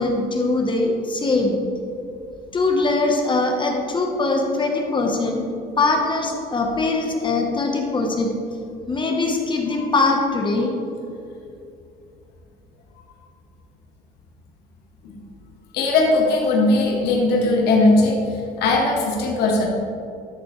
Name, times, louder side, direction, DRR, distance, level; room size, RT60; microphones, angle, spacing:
voice 1, 0.0-1.6 2.5-5.4 5.8-8.4 8.9-10.7, left 3 dB, 30° left, 2 dB, 1.1 m, -21 dB
voice 2, 15.7-18.2 18.6-19.7, left 2 dB, 80° left, -1 dB, 1.4 m, -19 dB
12.5 x 6.9 x 3.2 m, 2.6 s
cardioid pair, 110°, 17 cm